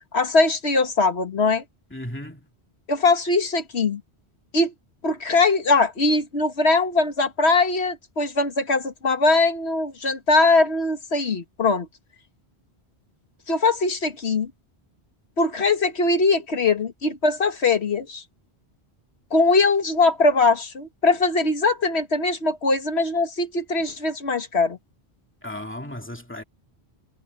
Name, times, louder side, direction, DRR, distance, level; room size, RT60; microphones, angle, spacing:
voice 1, 0.1-1.6 2.9-4.0 4.5-4.7 5.0-11.9 13.5-14.5 15.4-18.2 19.3-24.8, left 3 dB, 85° left, 2.0 m, -21 dB
voice 2, 1.9-2.5 25.4-26.4, left 1 dB, 10° left, 2.3 m, -35 dB
omnidirectional pair, 1.1 m